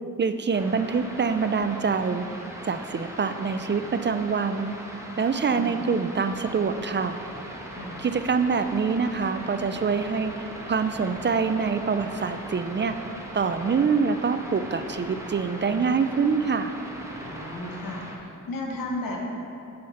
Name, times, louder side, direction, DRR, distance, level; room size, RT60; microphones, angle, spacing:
voice 1, 0.2-2.2 2.6-4.8 5.2-7.2 8.0-10.3 10.7-12.9 13.3-16.7, right 5 dB, 35° right, 9 dB, 0.4 m, -25 dB
sound 1, 0.5-18.2, right 1 dB, 10° right, 1.3 m, -40 dB
voice 2, 5.5-5.9 7.7-8.0 17.2-19.2, left 2 dB, 85° left, -1 dB, 1.5 m, -34 dB
7.5 x 6.5 x 5.8 m, 2.6 s
cardioid pair, 80°, 33 cm